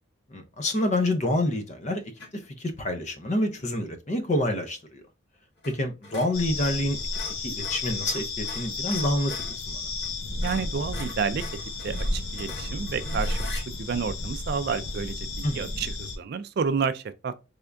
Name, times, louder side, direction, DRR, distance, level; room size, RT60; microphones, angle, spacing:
voice 1, 0.3-2.0 2.3-5.0 5.7-7.0 7.4-9.9 15.4-15.6, left 1 dB, 35° left, 0.6 m, -27 dB
sound 1, 2.2-2.5 5.6-5.8 6.0-9.6 10.0-10.1 10.4-13.7, left 2 dB, 55° left, 2.0 m, -42 dB
sound 2, 6.3-16.2, left 2 dB, 90° left, 0.8 m, -32 dB
voice 2, 10.4-11.6 11.8-17.3, right 6 dB, 50° right, 0.3 m, -30 dB
3.5 x 3.4 x 2.5 m
head